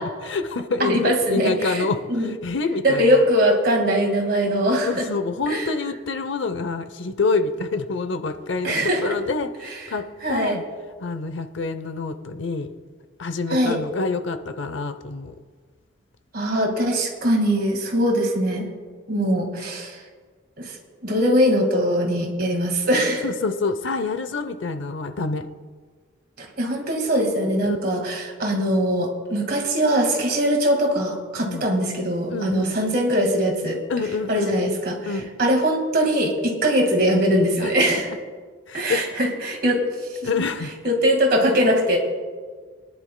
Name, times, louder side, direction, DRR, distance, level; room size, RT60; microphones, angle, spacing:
voice 1, 0.0-3.2 4.9-8.8 9.0-10.6 11.0-12.7 13.2-15.4 23.2-25.5 27.7-27.8 31.4-31.7 32.3-32.8 33.9-34.7 35.1-35.3 37.6-37.7 38.7-39.2 40.2-40.7, left 3 dB, 70° left, 11 dB, 0.7 m, -27 dB
voice 2, 0.8-2.3 2.8-5.0 5.5-5.7 8.6-9.2 10.2-10.6 13.5-13.8 16.3-18.7 19.1-20.0 20.6-20.8 21.0-23.2 26.4-33.8 34.3-35.1 35.4-38.1 38.7-40.1 40.8-42.0, equal, 50° right, 3 dB, 1.8 m, -21 dB
23.5 x 10.5 x 2.2 m, 1.5 s
head